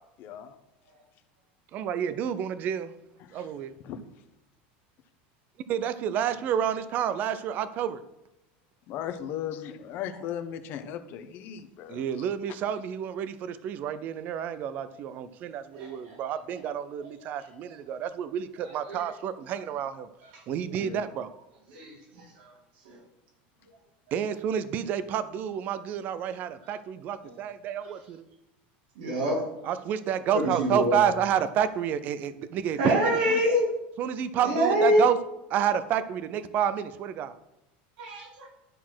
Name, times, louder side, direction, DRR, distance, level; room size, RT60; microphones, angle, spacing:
voice 1, 0.2-0.6 3.2-3.5 3.8-4.0 8.9-12.2 20.7-21.0, left 9 dB, 40° left, 8 dB, 0.9 m, -37 dB
voice 2, 1.7-2.9 3.3-3.7 5.7-8.0 11.9-20.1 20.5-21.3 24.1-28.2 29.6-33.4 34.0-35.2 35.5-37.3, right 9 dB, 35° right, 13 dB, 0.4 m, -29 dB
voice 3, 15.7-16.2 17.0-17.1 18.6-19.0 19.5-19.6 21.7-21.9 27.2-27.3 29.0-29.4 30.3-31.1 32.8-33.7 34.4-35.1 38.0-38.5, equal, 80° right, -1 dB, 3.1 m, -26 dB
11.5 x 4.1 x 6.1 m, 0.91 s
supercardioid pair, 170°, 5 cm